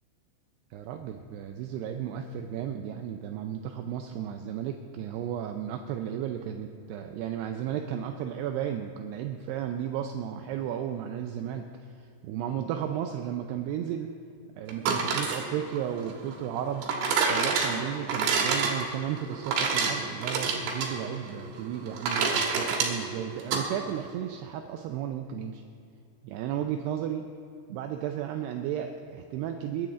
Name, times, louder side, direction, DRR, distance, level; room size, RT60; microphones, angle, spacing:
voice 1, 0.7-14.1 14.6-16.9 17.3-25.6 26.2-27.2 27.7-29.9, right 9 dB, 85° right, 5 dB, 2.3 m, -34 dB
sound 1, 14.7-23.6, right 5 dB, 70° right, 3.6 m, -28 dB
21.5 x 10.5 x 3.7 m, 2.6 s
omnidirectional pair, 5.4 m